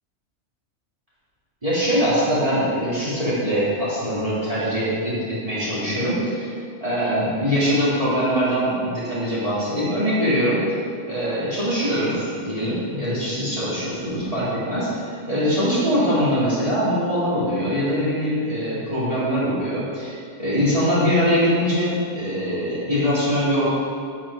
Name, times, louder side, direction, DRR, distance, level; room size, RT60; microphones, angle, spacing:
voice 1, 1.6-6.5 6.8-10.6 11.1-23.7, equal, 25° right, -11 dB, 3.2 m, -22 dB
10.0 x 8.6 x 5.0 m, 2.3 s
omnidirectional pair, 1.4 m